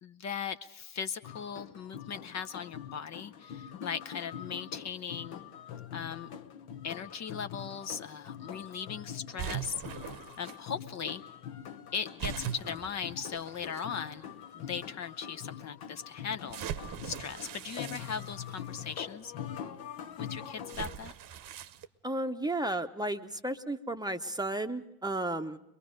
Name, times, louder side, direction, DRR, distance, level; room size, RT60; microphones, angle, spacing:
voice 1, 0.0-5.4 5.9-6.3 6.8-9.8 10.4-11.2 11.9-14.2 14.5-16.6 17.0-19.3 20.2-21.1, left 7 dB, 40° left, 9 dB, 0.8 m, -38 dB
sound 1, 1.2-20.9, left 9 dB, 60° left, 1.2 m, -44 dB
sound 2, 9.4-10.6 12.2-13.8 14.6-14.7 16.5-18.9 20.7-21.9, right 10 dB, 50° right, 1.0 m, -40 dB
voice 2, 22.0-25.6, right 1 dB, 10° right, 7 dB, 0.8 m, -33 dB
23.0 x 22.5 x 5.2 m, 0.88 s
hypercardioid pair, 65°, 43 cm